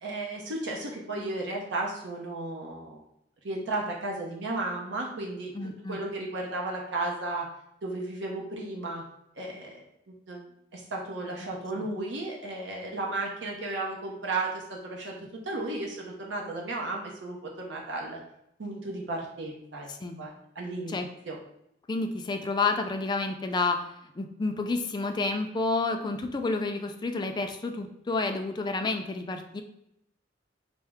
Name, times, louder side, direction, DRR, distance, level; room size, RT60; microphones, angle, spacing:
voice 1, 0.0-3.0 3.4-5.5 5.9-7.5 7.8-9.0 9.4-10.4 10.7-15.1 15.4-18.2 18.6-19.9 20.2-21.0 21.2-21.4, right 2 dB, 75° right, -1 dB, 0.7 m, -34 dB
voice 2, 5.5-6.0 11.8-11.9 19.9-20.2 20.9-21.1 21.9-23.8 24.2-29.6, left 3 dB, 25° left, 5 dB, 0.3 m, -30 dB
4.4 x 2.0 x 3.5 m, 0.78 s
head